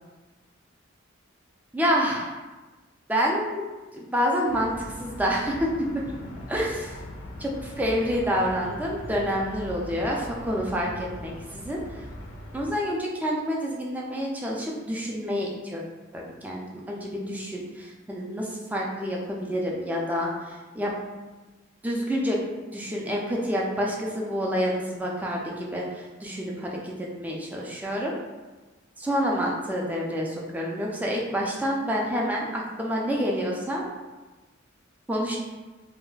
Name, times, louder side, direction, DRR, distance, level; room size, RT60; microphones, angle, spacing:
voice 1, 1.7-2.3 3.1-3.7 3.9-5.7 5.9-6.0 6.5-6.9 7.4-12.1 12.5-15.8 16.1-20.9 21.8-22.4 22.7-28.1 29.0-33.8 35.1-35.4, equal, 10° right, -2 dB, 0.3 m, -28 dB
sound 1, 4.5-12.7, left 1 dB, 65° left, 0.4 m, -40 dB
2.2 x 2.0 x 3.8 m, 1.2 s
head